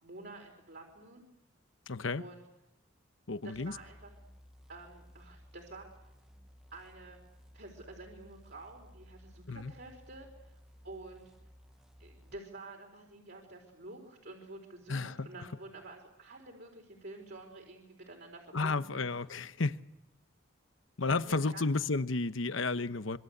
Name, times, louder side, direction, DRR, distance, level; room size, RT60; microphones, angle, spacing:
voice 1, 0.0-1.2 2.2-2.4 3.4-4.1 4.7-5.9 6.7-7.2 7.5-10.5 10.8-11.3 12.0-19.0 21.2-21.9, right 2 dB, 50° right, 4.4 m, -49 dB
voice 2, 1.9-2.2 3.3-3.7 9.5-9.7 14.9-15.3 18.5-19.8 21.0-23.2, left 3 dB, 70° left, 1.0 m, -32 dB
sound 1, 3.5-12.4, equal, 5° right, 0.9 m, -57 dB
25.5 x 25.0 x 8.0 m
head